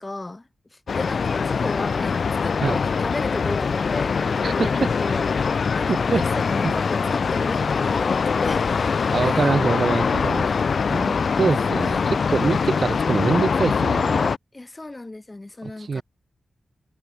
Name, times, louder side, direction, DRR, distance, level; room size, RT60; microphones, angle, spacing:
voice 1, 0.0-5.3 5.5-8.7 9.2-9.5 10.9-11.4 11.8-12.1 14.5-16.0, left 2 dB, 30° left, 1.6 m, -34 dB
sound 1, 0.9-14.4, left 5 dB, 70° left, 1.1 m, -23 dB
voice 2, 4.4-4.9 5.9-6.2 6.6-6.7 9.1-10.5 10.9-14.3 15.6-16.0, right 4 dB, 60° right, 1.0 m, -24 dB
cardioid pair, 45°, 0 cm